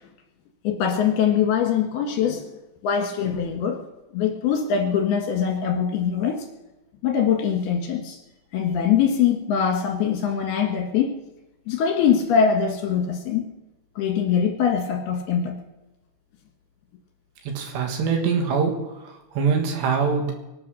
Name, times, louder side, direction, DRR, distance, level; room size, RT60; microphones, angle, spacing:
voice 1, 0.6-2.5 2.8-3.8 4.1-6.5 7.0-8.2 8.5-11.2 11.7-13.4 14.0-15.6, left 7 dB, 65° left, 2 dB, 3.1 m, -22 dB
voice 2, 17.5-18.7 19.0-20.3, right 5 dB, 70° right, 4 dB, 3.6 m, -23 dB
24.0 x 8.3 x 6.3 m, 0.99 s
omnidirectional pair, 5.5 m